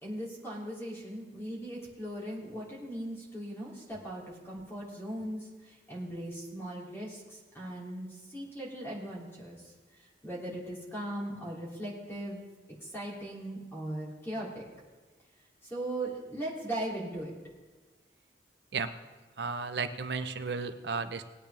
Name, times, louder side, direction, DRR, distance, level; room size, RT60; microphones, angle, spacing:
voice 1, 0.0-5.4 5.9-7.2 7.5-8.1 8.3-9.6 10.2-12.4 12.9-14.6 15.7-17.3, right 1 dB, 15° left, -4 dB, 2.8 m, -38 dB
voice 2, 19.4-21.2, right 4 dB, 65° right, 9 dB, 0.7 m, -34 dB
19.5 x 8.8 x 3.4 m, 1.3 s
head